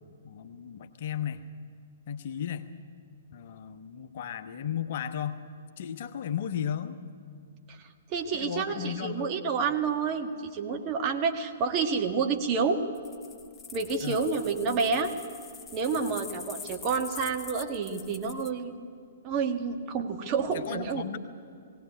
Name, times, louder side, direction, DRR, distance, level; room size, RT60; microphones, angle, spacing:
voice 1, 0.2-1.4 2.1-2.7 3.3-5.4 5.8-7.0 8.3-9.3 14.0-14.3 15.9-16.1 20.4-21.2, left 9 dB, 45° left, 8 dB, 1.2 m, -35 dB
voice 2, 7.7-12.8 13.7-15.1 15.7-18.9 19.2-21.0, right 5 dB, 30° right, 4 dB, 1.7 m, -29 dB
sound 1, 12.9-18.5, left 6 dB, 15° left, 1.0 m, -45 dB
19.5 x 17.5 x 9.6 m, 2.3 s
figure-of-eight pair, 120°, 0 cm